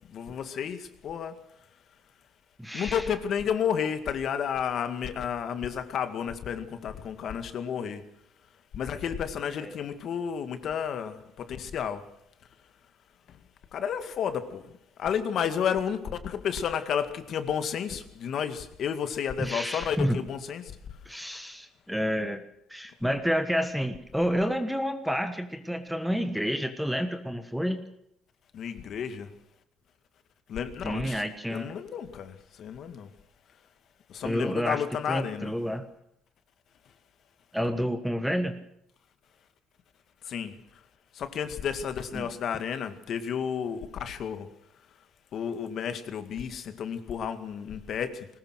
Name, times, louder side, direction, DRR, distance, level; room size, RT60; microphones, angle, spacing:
voice 1, 0.1-1.4 2.7-8.0 8.7-12.0 13.7-14.6 15.0-20.6 28.5-29.3 30.5-31.2 31.5-33.1 34.1-35.5 40.3-40.5 41.2-44.5 45.3-48.3, left 8 dB, 45° left, 2.0 m, -31 dB
voice 2, 2.6-3.0 9.6-9.8 19.4-20.2 21.0-22.4 22.7-27.8 30.8-31.7 34.2-35.8 37.5-38.6 42.1-42.3, equal, ahead, 1.4 m, -29 dB
21.5 x 19.5 x 6.4 m
cardioid pair, 155°, 0 cm